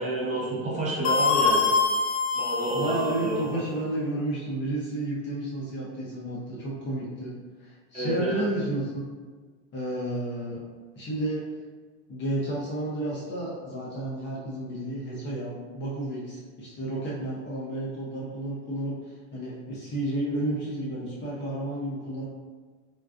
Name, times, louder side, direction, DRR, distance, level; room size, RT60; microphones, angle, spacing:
voice 1, 0.0-1.7 2.3-3.6 7.9-8.4, right 1 dB, 20° right, -6 dB, 0.8 m, -29 dB
sound 1, 1.0-3.4, left 4 dB, 80° left, 0.6 m, -24 dB
voice 2, 2.7-7.3 7.6-9.0 9.7-10.6 10.9-11.4 12.1-22.3, right 1 dB, 30° left, -5 dB, 0.6 m, -31 dB
3.8 x 2.3 x 2.4 m, 1.4 s
supercardioid pair, 135°, 38 cm